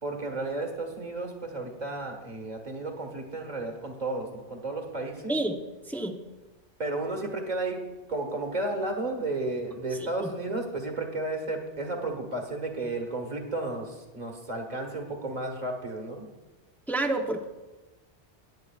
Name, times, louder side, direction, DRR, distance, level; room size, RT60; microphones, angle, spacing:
voice 1, 0.0-5.4 6.8-16.3, right 2 dB, 40° right, 3 dB, 1.7 m, -33 dB
voice 2, 5.9-6.2 10.2-10.3 16.9-17.4, right 2 dB, ahead, 3 dB, 0.6 m, -28 dB
19.0 x 9.8 x 2.4 m, 1.2 s
omnidirectional pair, 1.2 m